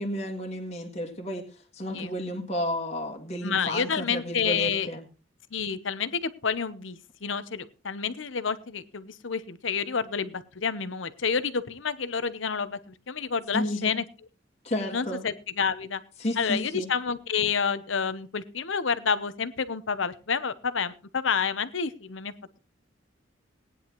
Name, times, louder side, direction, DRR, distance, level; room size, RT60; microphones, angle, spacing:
voice 1, 0.0-1.4 1.7-5.0 13.5-13.9 14.6-15.3 16.2-16.9, equal, 35° left, 1 dB, 1.7 m, -32 dB
voice 2, 3.4-4.9 5.5-14.0 14.9-16.0 16.4-22.3, left 6 dB, 75° left, 14 dB, 0.9 m, -29 dB
18.5 x 10.0 x 3.1 m, 0.32 s
head